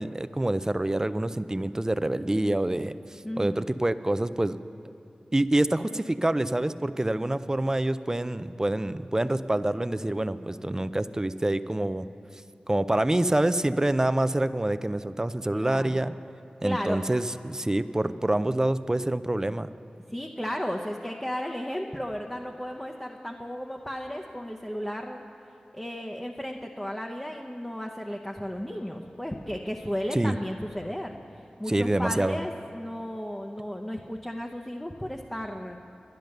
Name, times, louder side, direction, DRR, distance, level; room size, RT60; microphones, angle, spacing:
voice 1, 0.0-4.6 5.3-12.0 12.7-16.1 16.6-19.7 30.1-30.3 31.7-32.4, right 1 dB, 20° right, 13 dB, 0.4 m, -26 dB
voice 2, 3.2-3.6 15.5-16.0 16.6-17.0 20.1-25.2 25.7-31.1 31.6-35.8, equal, 10° left, 1 dB, 0.8 m, -34 dB
10.5 x 10.5 x 6.6 m, 2.7 s
cardioid pair, 40°, 3 cm